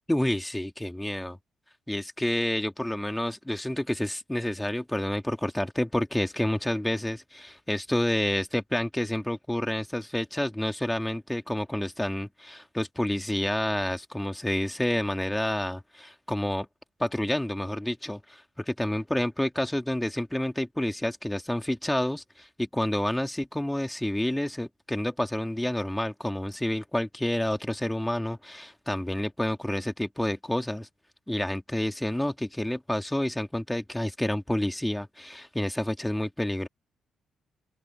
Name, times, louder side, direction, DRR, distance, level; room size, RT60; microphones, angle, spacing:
voice 1, 0.1-1.4 1.9-16.7 17.0-30.9 31.3-36.7, left 1 dB, 5° left, 2.2 m, -29 dB
open air
cardioid pair, 100°, 0 cm